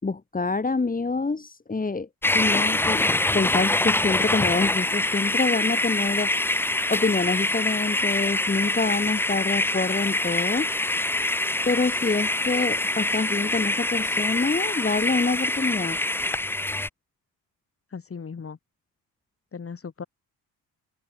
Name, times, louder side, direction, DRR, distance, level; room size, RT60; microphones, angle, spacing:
voice 1, 0.0-2.1 2.3-6.3 6.9-10.7 11.6-16.0, left 3 dB, 25° left, 3.3 m, -26 dB
sound 1, 2.2-16.9, left 2 dB, 5° left, 0.5 m, -25 dB
voice 2, 17.9-18.6 19.5-20.0, left 5 dB, 40° left, 6.7 m, -37 dB
cardioid pair, 85°, 36 cm